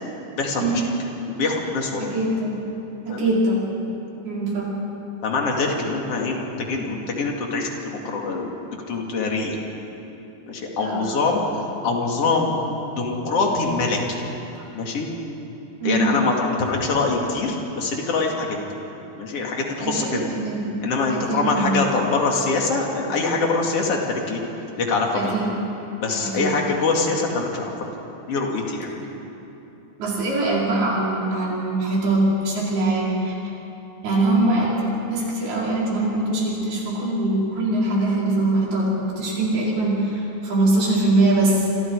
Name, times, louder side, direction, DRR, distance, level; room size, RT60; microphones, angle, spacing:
voice 1, 0.4-0.8 1.3-2.1 3.1-3.3 5.2-8.5 8.9-9.6 10.5-11.4 11.8-12.6 13.0-14.2 14.7-15.1 15.8-18.6 19.2-20.3 20.8-24.4 24.8-25.2 26.0-27.8 28.3-28.9, left 3 dB, 40° left, 0 dB, 3.2 m, -24 dB
voice 2, 2.0-2.6 3.1-3.7 4.2-4.7 10.8-11.3 14.5-14.6 15.8-16.2 19.8-20.7 21.1-21.8 25.1-25.5 26.2-26.6 30.0-33.3 34.0-41.7, right 2 dB, 85° right, -5 dB, 6.9 m, -22 dB
27.5 x 26.0 x 4.9 m, 3.0 s
omnidirectional pair, 4.3 m